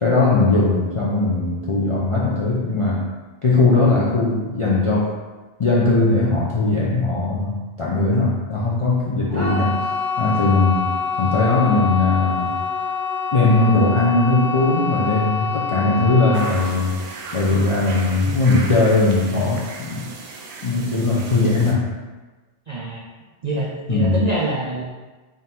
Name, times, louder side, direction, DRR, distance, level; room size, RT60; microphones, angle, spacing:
voice 1, 0.0-3.1 3.4-5.2 5.6-9.8 10.2-10.9 11.2-12.6 13.3-17.0 17.3-20.1 20.6-21.9 23.9-24.2, left 3 dB, 50° left, -6 dB, 0.3 m, -19 dB
sound 1, 9.3-20.2 20.4-21.0 21.4-21.5, left 5 dB, 15° right, 0.6 m, -27 dB
sound 2, 16.3-21.7, right 3 dB, 85° right, 0.9 m, -36 dB
voice 2, 22.7-23.0 23.4-24.8, right 2 dB, 65° right, -3 dB, 0.4 m, -25 dB
3.7 x 2.5 x 4.1 m, 1.3 s
omnidirectional pair, 1.2 m